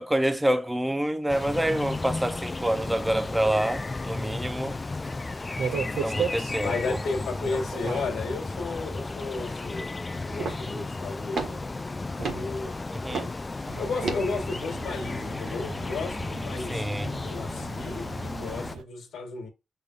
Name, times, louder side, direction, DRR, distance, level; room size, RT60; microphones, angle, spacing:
voice 1, 0.0-4.8 6.0-7.0 12.9-13.3 16.7-17.1, right 1 dB, 10° right, 0.8 m, -27 dB
sound 1, 1.3-18.8, left 3 dB, 20° left, 0.4 m, -34 dB
sound 2, 5.6-6.6 7.4-8.2 10.4-10.7 11.3-11.7 12.2-12.5 13.1-13.4 14.0-14.3, right 5 dB, 65° right, 1.5 m, -31 dB
voice 2, 6.6-10.0 10.2-11.6 12.3-12.8 13.7-16.9 17.2-19.5, left 4 dB, 75° left, 1.7 m, -33 dB
sound 3, 13.7-18.8, right 8 dB, 80° right, 0.6 m, -44 dB
6.8 x 3.3 x 5.6 m
cardioid pair, 120°, 0 cm